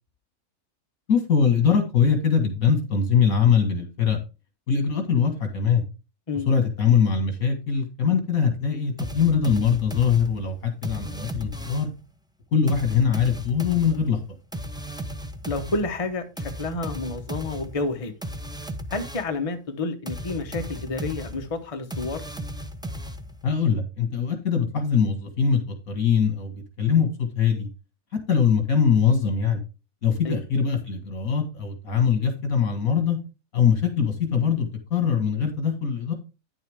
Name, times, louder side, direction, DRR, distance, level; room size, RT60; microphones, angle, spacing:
voice 1, 1.1-4.2 4.7-5.8 6.5-11.9 12.5-14.2 23.4-26.5 26.8-27.1 27.4-27.7 28.3-29.6 30.0-33.2 33.5-36.1, left 6 dB, 75° left, 6 dB, 2.3 m, -22 dB
sound 1, 9.0-12.0 12.7-19.4 20.1-23.6, equal, 5° right, 0.4 m, -36 dB
voice 2, 15.5-18.1 18.9-22.2 30.2-30.4, left 3 dB, 25° left, 6 dB, 1.0 m, -29 dB
9.8 x 7.1 x 3.5 m, 0.30 s
omnidirectional pair, 1.5 m